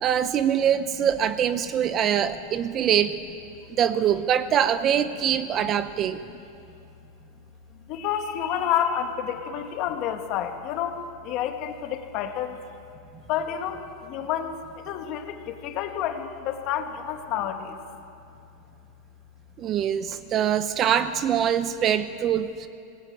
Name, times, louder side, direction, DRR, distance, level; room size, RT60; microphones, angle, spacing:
voice 1, 0.0-3.2 3.8-6.2 19.6-22.7, right 9 dB, 25° right, 12 dB, 0.7 m, -23 dB
voice 2, 7.9-12.6 13.3-17.8 20.0-20.1, left 9 dB, 35° left, 5 dB, 2.1 m, -29 dB
26.5 x 20.5 x 9.1 m, 2.6 s
supercardioid pair, 170°, 0 cm